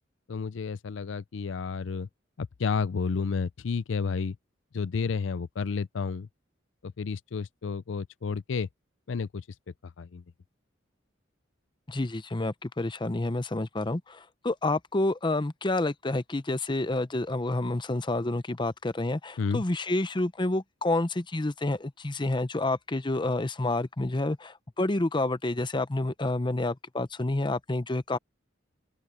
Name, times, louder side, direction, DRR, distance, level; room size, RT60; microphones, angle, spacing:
voice 1, 0.3-2.1 2.4-4.4 4.7-6.3 6.8-8.7 9.1-10.2 19.4-19.6, left 5 dB, 75° left, 0.5 m, -31 dB
voice 2, 11.9-28.2, left 2 dB, 25° left, 0.7 m, -29 dB
open air
head